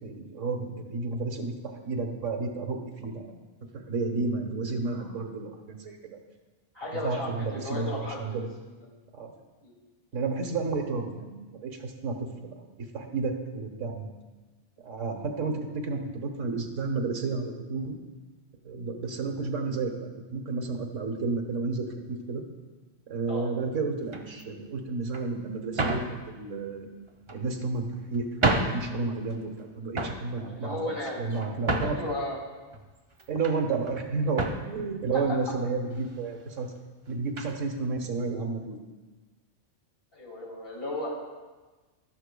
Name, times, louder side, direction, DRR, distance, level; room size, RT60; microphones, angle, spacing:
voice 1, 0.0-3.4 3.7-6.2 6.9-8.5 9.1-9.3 10.1-12.1 12.4-12.5 12.9-14.1 14.8-18.0 18.6-22.4 23.1-26.9 27.3-30.8 31.2-32.0 33.3-36.7 37.1-38.8, right 4 dB, 90° right, 3 dB, 1.5 m, -31 dB
voice 2, 6.7-8.3 8.7-8.8 9.6-9.7 23.3-23.5 30.5-31.2 31.8-32.4 40.1-41.1, left 1 dB, 50° left, -3 dB, 2.7 m, -34 dB
sound 1, 24.0-24.4 25.1-25.3 25.8-26.1 27.1-27.7 28.1-28.2 28.4-28.9 29.2-29.6 29.9-30.3 30.9-32.1 32.7-33.6 33.9-34.1 34.3-34.7 35.5-35.6 35.9-36.1 37.4-37.6, right 2 dB, 30° right, 0.7 m, -30 dB
13.0 x 12.0 x 2.2 m, 1.3 s
omnidirectional pair, 1.3 m